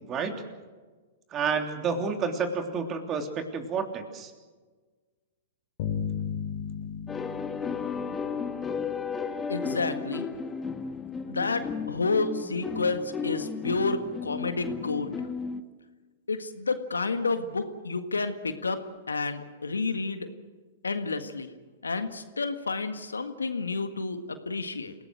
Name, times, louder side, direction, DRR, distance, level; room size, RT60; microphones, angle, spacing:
voice 1, 0.1-0.4 1.3-4.3, right 5 dB, 30° right, 5 dB, 3.2 m, -30 dB
sound 1, 5.8-9.2, left 7 dB, 55° left, 3.6 m, -35 dB
sound 2, 7.1-15.6, left 5 dB, 15° left, 1.6 m, -34 dB
voice 2, 9.5-10.3 11.3-15.2 16.3-18.8 19.1-20.3 20.8-21.5 21.8-24.9, left 3 dB, 85° left, 9 dB, 1.7 m, -30 dB
28.5 x 18.0 x 6.4 m, 1.4 s
figure-of-eight pair, 105°, 0 cm